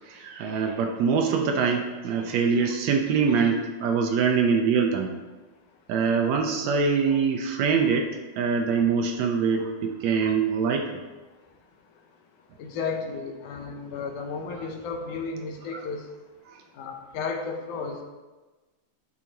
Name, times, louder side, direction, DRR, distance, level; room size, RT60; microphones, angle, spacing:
voice 1, 0.0-5.1 5.9-8.1 8.4-10.9 15.7-15.8 16.5-16.6, right 5 dB, 75° right, 3 dB, 1.8 m, -24 dB
voice 2, 12.6-16.0 16.8-18.0, left 4 dB, 85° left, 3 dB, 2.4 m, -33 dB
11.0 x 6.3 x 2.9 m, 1.2 s
omnidirectional pair, 3.4 m